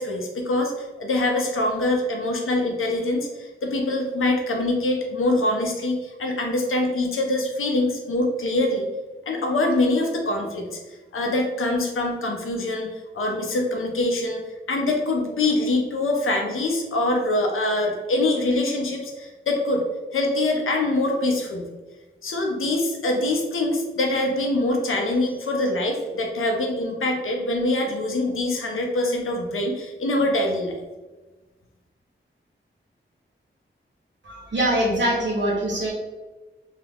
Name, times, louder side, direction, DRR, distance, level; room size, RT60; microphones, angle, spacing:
voice 1, 0.0-8.9 9.3-14.4 14.7-19.8 20.1-21.7 22.2-30.8, left 2 dB, 80° left, 1 dB, 0.6 m, -24 dB
voice 2, 34.2-35.9, right 1 dB, 60° right, -5 dB, 0.7 m, -23 dB
2.3 x 2.2 x 3.3 m, 1.2 s
wide cardioid pair, 85°, 21 cm